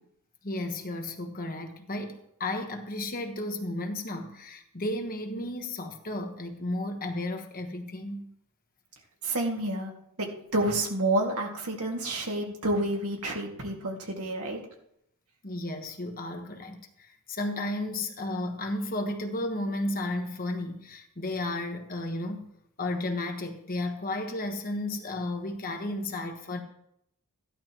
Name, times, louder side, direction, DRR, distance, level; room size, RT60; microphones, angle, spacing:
voice 1, 0.4-8.3 15.4-22.5 22.8-26.6, left 1 dB, 40° left, 1.3 m, -33 dB
voice 2, 9.2-9.9 10.2-14.6, right 1 dB, 85° right, 2.3 m, -29 dB
14.5 x 11.0 x 3.1 m
head